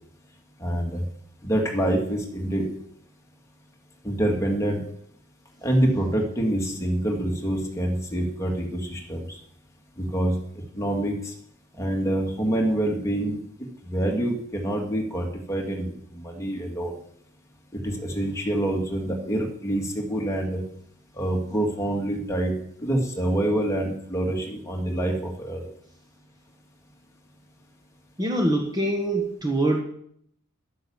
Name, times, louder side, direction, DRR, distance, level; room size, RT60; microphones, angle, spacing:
voice 1, 0.6-1.0 1.4-2.7 4.0-4.8 5.6-9.4 10.0-10.4 10.8-11.3 11.8-13.4 13.8-16.9 17.7-20.6 21.2-22.5 22.8-25.7, right 1 dB, 15° left, 0 dB, 2.3 m, -26 dB
voice 2, 28.2-29.8, right 1 dB, 20° right, 1 dB, 1.4 m, -24 dB
11.5 x 10.0 x 7.2 m, 0.68 s
head